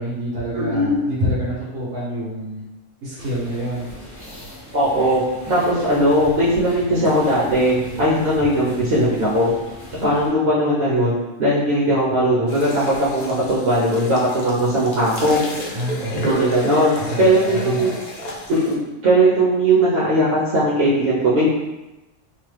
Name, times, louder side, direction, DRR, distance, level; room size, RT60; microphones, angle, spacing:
voice 1, 0.0-2.6 3.0-3.9 15.7-16.3 16.9-17.9, equal, 90° right, -9 dB, 1.3 m, -27 dB
voice 2, 0.5-1.0 4.7-5.2 5.5-9.5 10.0-11.1 11.4-12.8 13.1-15.4 16.1-17.9 18.5-18.8 19.0-21.5, right 1 dB, 55° right, -7 dB, 0.8 m, -18 dB
sound 1, 3.2-10.3, equal, 40° left, 0.8 m, -38 dB
sound 2, 12.5-18.7, equal, 60° left, 0.4 m, -32 dB
3.0 x 2.1 x 3.2 m, 1.0 s
omnidirectional pair, 1.3 m